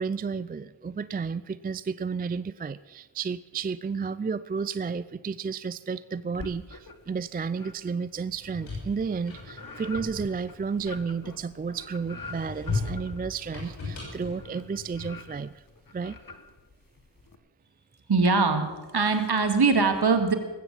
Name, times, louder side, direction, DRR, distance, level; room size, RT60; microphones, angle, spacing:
voice 1, 0.0-15.6 15.9-16.2, right 5 dB, 20° right, 16 dB, 0.4 m, -32 dB
sound 1, 6.3-7.2 7.5-17.4, left 3 dB, 45° left, 1.6 m, -46 dB
sound 2, 8.3-11.5 12.0-15.4, left 3 dB, 80° left, 6.4 m, -37 dB
voice 2, 18.1-20.3, right 4 dB, 55° right, 6 dB, 2.2 m, -22 dB
19.5 x 8.1 x 7.2 m, 1.2 s
cardioid pair, 40°, 46 cm